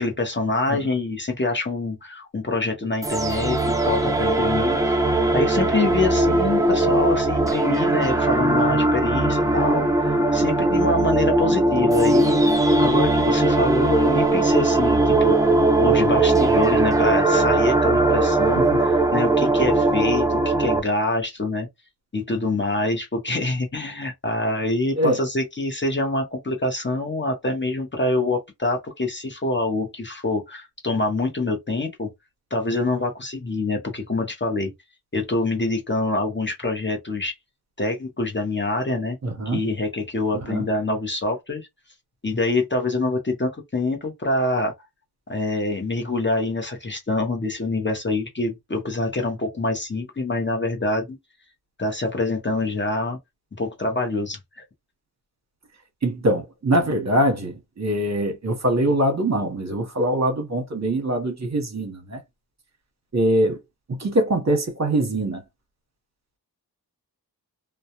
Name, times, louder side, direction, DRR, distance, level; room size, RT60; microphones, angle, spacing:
voice 1, 0.0-12.4 12.8-21.7 22.1-32.1 32.5-34.7 35.1-37.3 37.8-39.2 39.5-41.7 42.2-44.7 45.3-51.2 51.8-53.2 53.6-54.6, left 2 dB, 30° left, 0.7 m, -25 dB
sound 1, 3.0-20.8, right 2 dB, 10° right, 0.4 m, -19 dB
voice 2, 39.2-39.6 40.4-40.6 56.0-62.2 63.1-63.6 63.9-65.4, right 1 dB, 40° right, 0.9 m, -23 dB
2.2 x 2.1 x 2.8 m
wide cardioid pair, 65°, 41 cm